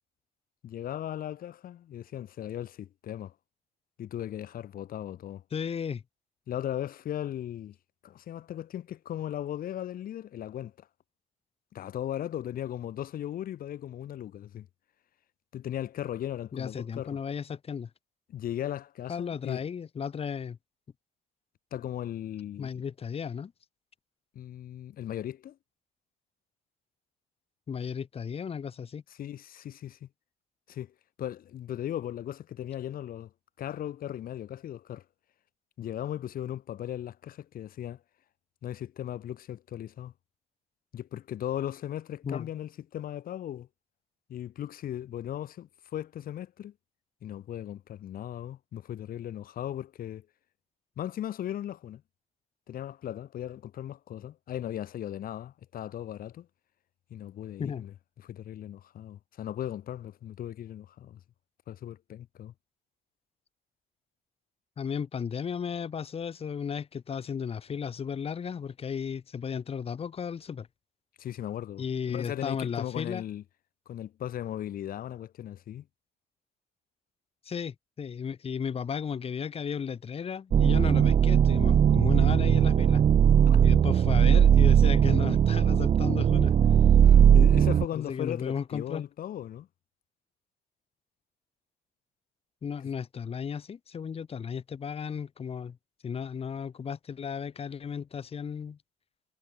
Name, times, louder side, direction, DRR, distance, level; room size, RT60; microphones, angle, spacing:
voice 1, 0.6-3.3 4.0-5.4 6.5-7.8 8.0-10.9 11.7-14.7 15.5-17.2 18.3-19.6 21.7-22.8 24.3-25.6 29.2-30.1 30.7-33.3 33.6-35.0 35.8-38.0 38.6-40.1 40.9-43.7 44.3-46.7 47.2-50.3 51.0-52.0 52.7-56.5 57.1-57.9 58.2-61.2 61.7-62.5 71.2-73.4 73.9-75.9 83.5-83.6 87.0-89.7, left 11 dB, 60° left, 2.5 m, -37 dB
voice 2, 5.5-6.0 16.5-17.9 19.1-20.6 22.6-23.5 27.7-29.0 42.2-42.5 57.6-57.8 64.8-70.7 71.8-73.2 77.5-83.0 83.6-86.5 87.9-89.1 92.6-95.8 96.0-98.8, left 7 dB, 35° left, 1.8 m, -34 dB
sound 1, 80.5-87.8, right 8 dB, 40° right, 0.8 m, -19 dB
cardioid pair, 110°, 17 cm